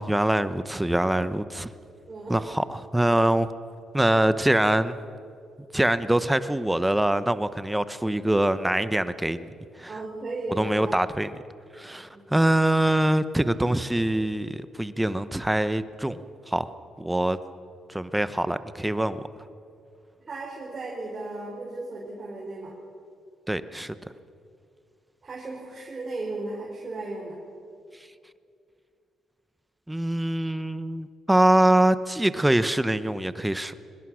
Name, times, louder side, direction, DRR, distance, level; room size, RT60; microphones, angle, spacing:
voice 1, 0.0-1.7 2.3-3.5 3.9-5.0 5.7-9.5 9.8-9.9 10.5-11.3 11.8-16.2 16.5-16.7 17.0-17.4 17.9-19.3 23.5-23.9 29.9-33.7, right 1 dB, 10° right, 13 dB, 0.8 m, -24 dB
voice 2, 2.1-2.4 9.9-11.0 12.1-12.4 20.2-22.7 25.2-27.4, right 2 dB, 35° right, -4 dB, 5.0 m, -35 dB
23.0 x 20.5 x 6.3 m, 2.4 s
cardioid pair, 90°, 0 cm